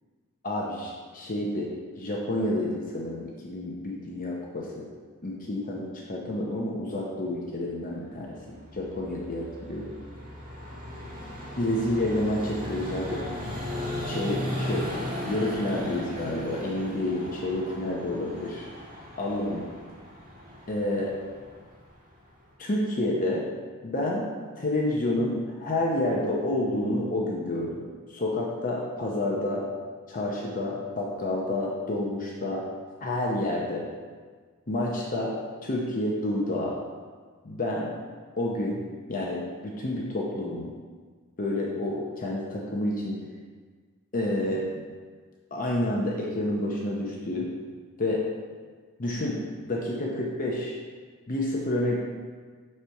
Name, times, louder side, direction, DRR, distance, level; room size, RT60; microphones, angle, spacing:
voice 1, 0.4-1.7 2.0-4.9 5.2-8.4 8.7-9.9 11.6-13.2 14.1-15.0 15.2-18.7 19.2-19.7 20.7-21.1 22.6-23.4 23.8-24.2 24.6-27.8 28.1-29.6 30.1-32.6 33.0-33.8 34.7-35.3 35.6-36.8 37.4-37.9 38.4-38.8 39.1-40.7 41.4-43.2 44.1-44.7 45.5-47.4 48.0-48.2 49.0-49.4 49.6-50.7 51.3-52.0, left 1 dB, 40° left, -3 dB, 0.8 m, -29 dB
Vehicle, 7.8-22.5, equal, 35° right, 1.6 m, -37 dB
6.6 x 4.3 x 4.6 m, 1.5 s
head